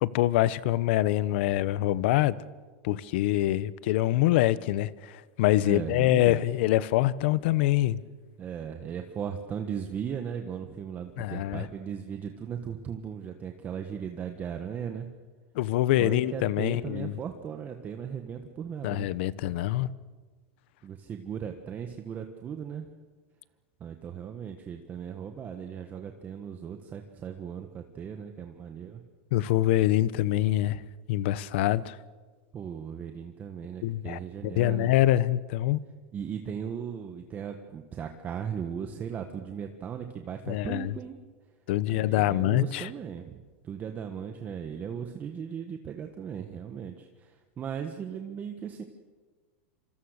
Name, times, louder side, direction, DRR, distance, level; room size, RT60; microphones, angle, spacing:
voice 1, 0.0-2.3 2.8-8.0 11.2-11.7 15.5-17.1 18.8-19.9 29.3-30.8 31.1-32.0 33.8-35.8 40.5-40.9 41.7-42.9, left 15 dB, 60° left, 17 dB, 1.0 m, -25 dB
voice 2, 5.6-6.4 8.4-15.1 16.0-19.2 20.8-23.0 23.8-29.0 32.5-35.0 36.1-41.2 41.9-43.4 43.6-48.8, right 8 dB, 25° right, 5 dB, 1.4 m, -37 dB
27.0 x 26.0 x 6.7 m, 1.4 s
supercardioid pair, 140°, 7 cm